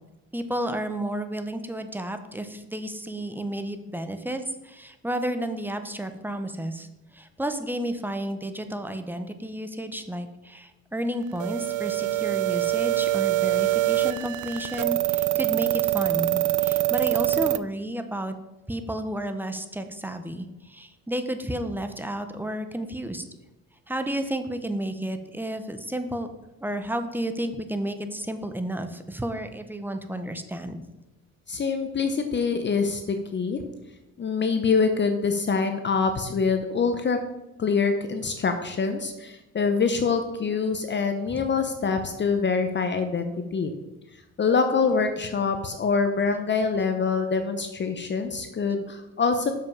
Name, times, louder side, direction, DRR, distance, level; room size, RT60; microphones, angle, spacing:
voice 1, 0.3-6.9 7.1-18.3 18.7-23.2 23.9-26.3 26.6-30.8 41.3-41.4, right 1 dB, 5° right, 8 dB, 0.8 m, -32 dB
sound 1, 11.4-17.6, right 16 dB, 75° right, 0.5 m, -24 dB
voice 2, 31.5-33.6 34.2-37.2 37.6-43.7 44.4-49.5, left 5 dB, 35° left, 7 dB, 0.8 m, -25 dB
6.8 x 5.6 x 5.4 m, 1.0 s
cardioid pair, 90°, 30 cm